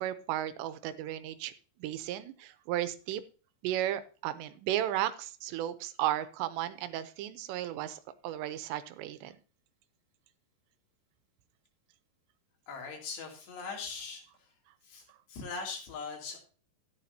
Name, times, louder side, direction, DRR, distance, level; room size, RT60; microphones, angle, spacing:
voice 1, 0.0-1.5 1.8-3.2 3.6-9.3, right 12 dB, 90° right, 13 dB, 3.0 m, -34 dB
voice 2, 12.7-14.2 14.8-16.5, left 4 dB, 80° left, 0 dB, 5.0 m, -41 dB
13.0 x 11.0 x 2.8 m, 0.36 s
omnidirectional pair, 4.9 m